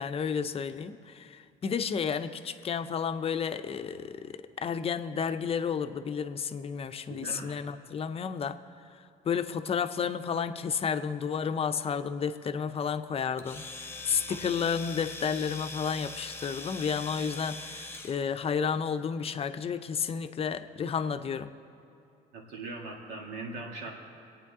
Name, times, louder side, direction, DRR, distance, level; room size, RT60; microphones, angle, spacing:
voice 1, 0.0-8.6 9.2-13.6 14.0-21.5, left 6 dB, 35° left, 10 dB, 0.6 m, -31 dB
voice 2, 7.1-7.5 14.1-14.5 22.3-23.9, right 3 dB, 75° right, -1 dB, 2.4 m, -40 dB
Domestic sounds home sounds, 13.4-18.2, left 3 dB, 15° left, 1.0 m, -42 dB
22.0 x 9.0 x 3.6 m, 2.7 s
cardioid pair, 110°, 17 cm